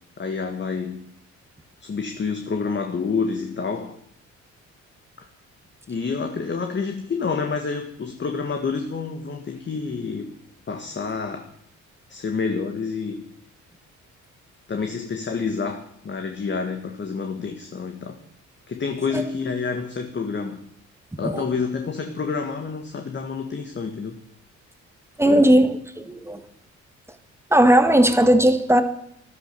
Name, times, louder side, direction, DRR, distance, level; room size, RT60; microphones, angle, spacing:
voice 1, 0.2-1.0 1.8-4.0 5.9-10.4 10.7-11.5 12.1-13.3 14.7-18.2 18.7-20.6 21.2-24.2 25.2-25.5, left 5 dB, 40° left, 5 dB, 1.7 m, -28 dB
voice 2, 25.2-26.4 27.5-28.8, right 1 dB, 10° right, 9 dB, 1.7 m, -17 dB
14.0 x 12.0 x 6.9 m, 0.70 s
cardioid pair, 90°, 30 cm